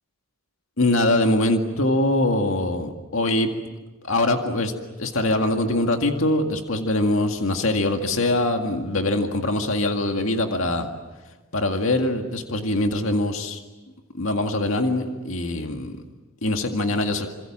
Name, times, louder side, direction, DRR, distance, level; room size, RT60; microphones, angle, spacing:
voice 1, 0.8-3.5 4.0-4.7 5.0-10.9 11.5-13.6 14.2-16.0 16.4-17.3, left 1 dB, 65° left, 4 dB, 2.1 m, -23 dB
28.0 x 26.5 x 7.5 m, 1.1 s
head